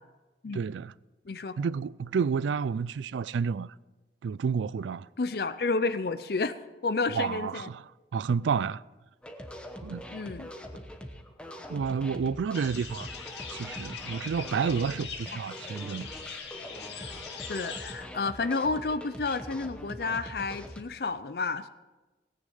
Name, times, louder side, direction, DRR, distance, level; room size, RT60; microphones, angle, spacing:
voice 1, 0.5-0.9 1.6-3.7 4.2-5.1 7.1-7.8 8.1-8.8 9.8-10.0 11.7-13.1 13.5-16.1, right 6 dB, 85° right, 0.3 m, -30 dB
voice 2, 1.3-1.6 5.2-6.5 6.8-7.7 10.1-10.5 17.5-21.7, left 3 dB, 55° left, 0.5 m, -30 dB
sound 1, 9.2-20.8, equal, 5° left, 1.0 m, -43 dB
sound 2, 12.5-17.9, left 6 dB, 75° left, 2.3 m, -42 dB
18.0 x 9.9 x 5.4 m
head